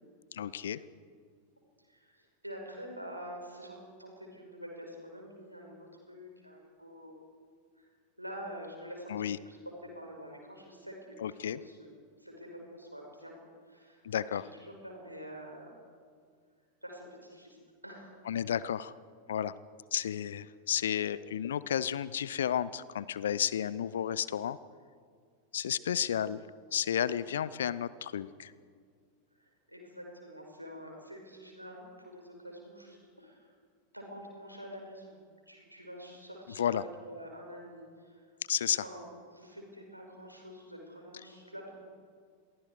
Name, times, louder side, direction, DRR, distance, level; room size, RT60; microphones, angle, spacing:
voice 1, 0.3-0.8 9.1-9.4 11.2-11.6 14.0-14.4 18.3-18.9 19.3-19.5 19.9-24.6 25.5-26.4 26.7-28.5 36.6-36.8 38.5-38.8, left 9 dB, 65° left, 19 dB, 0.7 m, -32 dB
voice 2, 1.9-7.2 7.8-7.9 8.2-9.1 9.5-9.6 10.0-11.9 12.2-13.4 13.7-15.8 16.8-17.6 17.8-18.2 29.4-33.5 33.9-35.2 35.5-38.2 38.7-41.8, equal, 90° right, 1 dB, 5.6 m, -47 dB
29.5 x 23.0 x 4.9 m, 2.1 s
figure-of-eight pair, 90°, 0 cm